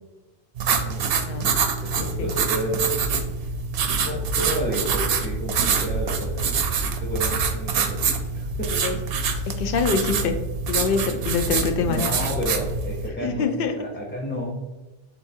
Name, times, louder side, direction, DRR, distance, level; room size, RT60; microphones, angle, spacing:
sound 1, 0.6-13.1, right 5 dB, 70° right, 0.7 m, -25 dB
voice 1, 0.8-1.5 1.8-3.0 3.4-3.5 4.0-6.5 7.0-8.0 8.3-9.0 11.9-14.5, equal, 10° left, -4 dB, 0.6 m, -31 dB
voice 2, 2.0-2.3 8.8-9.0 9.5-10.4 10.7-12.0 13.2-13.8, left 5 dB, 65° left, 7 dB, 0.7 m, -25 dB
6.9 x 2.4 x 2.7 m, 1.1 s
omnidirectional pair, 1.0 m